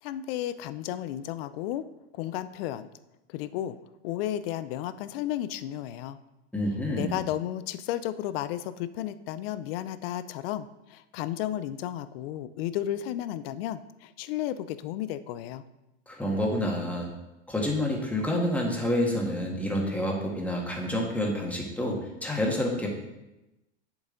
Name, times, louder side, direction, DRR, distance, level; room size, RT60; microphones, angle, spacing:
voice 1, 0.0-1.8 2.1-2.9 3.3-3.8 4.0-6.2 6.9-15.6, left 12 dB, 60° left, 14 dB, 0.6 m, -33 dB
voice 2, 6.5-7.1 16.1-17.1 17.5-22.9, left 1 dB, 5° left, -1 dB, 1.6 m, -28 dB
8.0 x 7.1 x 3.9 m, 0.96 s
supercardioid pair, 125°, 34 cm